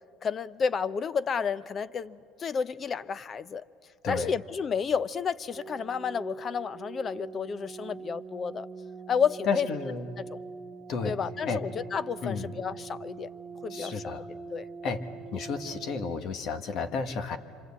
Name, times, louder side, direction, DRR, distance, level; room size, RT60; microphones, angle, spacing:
voice 1, 0.2-3.6 4.1-8.7 9.1-9.7 10.3-10.4 11.0-13.3 13.6-14.0 14.5-14.7, left 6 dB, 35° left, 17 dB, 0.7 m, -31 dB
sound 1, 5.5-16.1, right 5 dB, 15° right, 2.1 m, -43 dB
voice 2, 9.5-10.1 10.9-11.2 11.5-11.6 12.2-12.6 13.7-14.3 14.8-17.4, left 5 dB, 55° left, 8 dB, 1.4 m, -32 dB
27.0 x 26.0 x 8.4 m, 2.4 s
cardioid pair, 115°, 0 cm